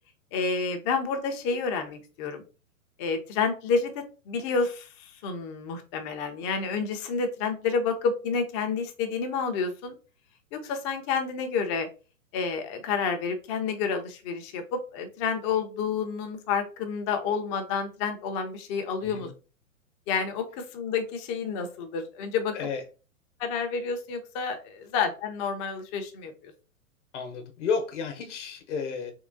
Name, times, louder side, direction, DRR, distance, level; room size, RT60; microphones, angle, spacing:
voice 1, 0.3-2.4 3.0-9.9 10.5-11.9 12.3-19.3 20.1-22.7 23.4-26.5, left 5 dB, 20° left, 0.4 m, -29 dB
voice 2, 27.1-29.1, left 5 dB, 55° left, 0.9 m, -31 dB
3.6 x 3.0 x 2.5 m
hypercardioid pair, 120°, 43 cm